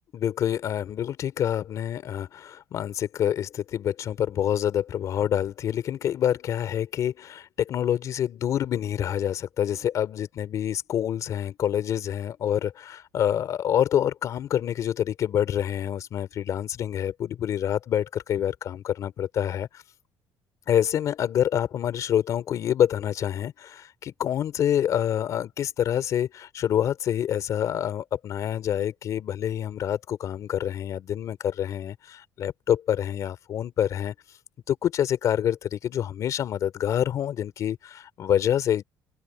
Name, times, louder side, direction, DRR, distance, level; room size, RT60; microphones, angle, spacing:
voice 1, 0.1-19.8 20.7-34.1 34.7-38.8, left 10 dB, 50° left, 3.3 m, -27 dB
cardioid pair, 160°, 7 cm